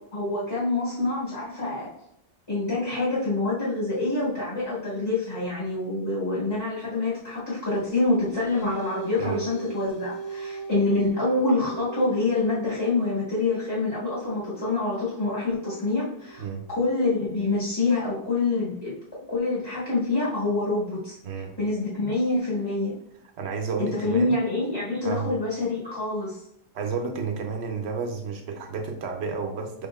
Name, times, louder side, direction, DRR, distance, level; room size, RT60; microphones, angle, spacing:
voice 1, 0.1-1.9 2.5-18.9 19.3-21.2 21.6-22.9 23.8-26.4, left 3 dB, 30° left, -9 dB, 1.6 m, -26 dB
sound 1, 7.8-18.7, right 5 dB, 50° left, 0.5 m, -40 dB
voice 2, 16.4-16.7 21.2-21.5 23.4-24.4 25.0-25.4 26.7-29.9, right 5 dB, 80° right, 4 dB, 1.0 m, -31 dB
5.4 x 3.7 x 2.4 m, 0.77 s
omnidirectional pair, 1.1 m